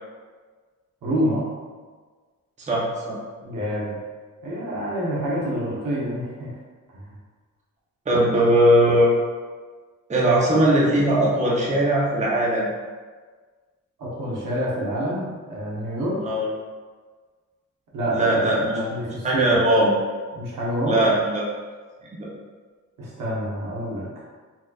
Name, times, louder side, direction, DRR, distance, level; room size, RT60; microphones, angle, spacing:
voice 1, 1.0-1.5 3.4-4.0 4.4-6.5 6.9-7.1 14.0-16.2 17.9-19.6 20.3-21.0 23.0-24.1, equal, 75° right, -6 dB, 1.1 m, -27 dB
voice 2, 2.7-3.2 8.1-9.1 10.1-12.7 16.2-16.5 18.1-18.8 19.2-19.9 20.8-21.4 22.2-22.3, right 1 dB, 20° right, -5 dB, 0.7 m, -19 dB
4.1 x 2.5 x 2.3 m, 1.5 s
cardioid pair, 105°, 32 cm